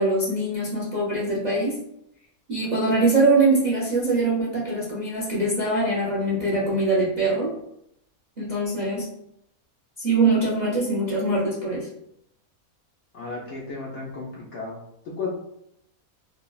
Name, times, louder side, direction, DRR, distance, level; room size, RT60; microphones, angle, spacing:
voice 1, 0.0-1.8 2.5-7.5 8.4-9.1 10.0-11.9, right 2 dB, 50° right, -7 dB, 0.5 m, -23 dB
voice 2, 13.1-15.3, left 3 dB, 65° left, -4 dB, 0.7 m, -34 dB
3.1 x 2.1 x 2.2 m, 0.76 s
omnidirectional pair, 1.6 m